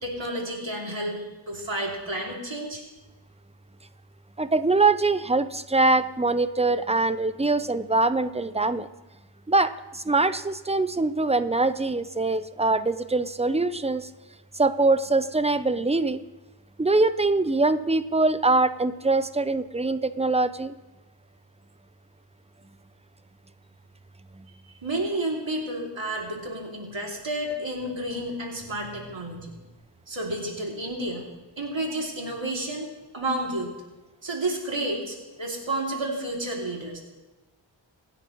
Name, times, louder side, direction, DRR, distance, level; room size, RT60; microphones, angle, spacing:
voice 1, 0.0-2.8 24.7-29.5 30.1-31.3 31.6-33.7 34.2-37.0, right 1 dB, 75° right, -1 dB, 2.8 m, -31 dB
voice 2, 4.4-8.9 9.5-14.1 14.5-16.2 16.8-20.7 24.3-24.4, right 3 dB, 15° right, 12 dB, 0.6 m, -23 dB
24.5 x 9.9 x 3.1 m, 1.2 s
wide cardioid pair, 45°, 46 cm